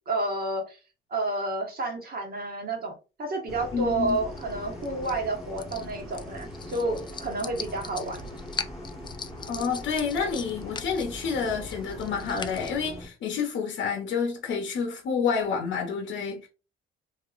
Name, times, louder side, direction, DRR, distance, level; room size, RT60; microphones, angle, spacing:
voice 1, 0.1-0.8 1.1-8.2, right 2 dB, 50° right, 1.3 m, -30 dB
sound 1, 3.5-13.1, equal, ahead, 1.4 m, -41 dB
voice 2, 3.7-4.2 9.5-16.5, left 6 dB, 70° left, 0.8 m, -29 dB
sound 2, 4.0-12.8, left 5 dB, 25° left, 0.3 m, -41 dB
3.1 x 2.7 x 2.4 m
cardioid pair, 90°, 20 cm